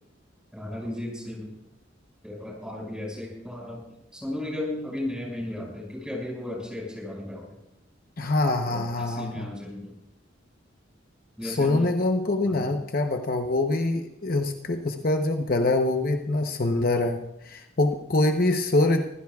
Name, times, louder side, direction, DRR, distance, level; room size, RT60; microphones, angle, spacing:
voice 1, 0.5-1.5 2.2-3.8 4.1-7.4 8.7-9.9 11.4-11.9 12.5-12.7, left 1 dB, 5° right, -2 dB, 5.7 m, -35 dB
voice 2, 8.2-9.5 11.4-19.1, left 2 dB, 50° left, 5 dB, 0.9 m, -25 dB
24.5 x 15.5 x 2.4 m, 0.83 s
head